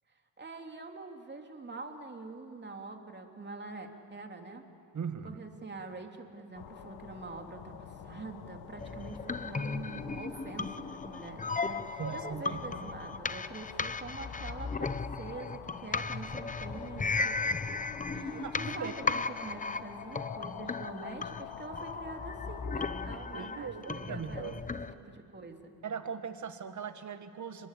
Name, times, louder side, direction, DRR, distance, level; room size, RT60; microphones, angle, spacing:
voice 1, 0.4-4.7 5.2-17.6 18.1-25.7, right 3 dB, 25° right, 3 dB, 3.2 m, -45 dB
voice 2, 4.9-5.4 12.0-12.9 18.4-19.0 23.2-24.6 25.8-27.7, right 7 dB, 45° right, 9 dB, 1.9 m, -40 dB
sound 1, 6.5-23.2, left 9 dB, 80° left, 1.6 m, -47 dB
sound 2, 8.8-24.9, left 4 dB, 20° left, 0.9 m, -36 dB
29.5 x 21.5 x 8.5 m, 2.3 s
cardioid pair, 95°, 42 cm